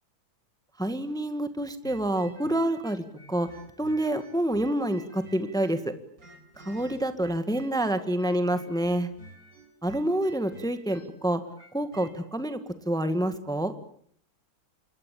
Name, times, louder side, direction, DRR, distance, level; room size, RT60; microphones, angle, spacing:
voice 1, 0.8-3.5 3.8-5.9 6.6-9.1 9.8-11.4 11.7-12.6 12.8-13.7, right 1 dB, ahead, 10 dB, 1.6 m, -27 dB
sound 1, 1.8-5.9 6.2-12.2, right 1 dB, 60° right, 5.3 m, -51 dB
27.0 x 22.0 x 8.5 m, 0.62 s
omnidirectional pair, 1.7 m